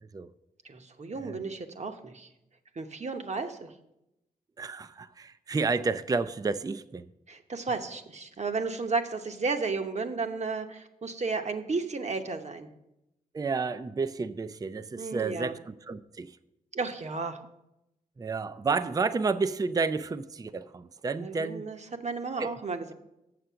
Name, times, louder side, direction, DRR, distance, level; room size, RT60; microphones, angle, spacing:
voice 1, 0.6-2.3 2.8-3.7 7.3-12.7 15.0-15.5 16.7-17.4 21.2-22.9, right 4 dB, 50° right, 0.9 m, -33 dB
voice 2, 4.6-7.1 13.3-16.4 18.2-21.7 22.4-22.6, right 4 dB, 25° right, 0.4 m, -31 dB
7.7 x 6.7 x 5.7 m
cardioid pair, 65°, 15 cm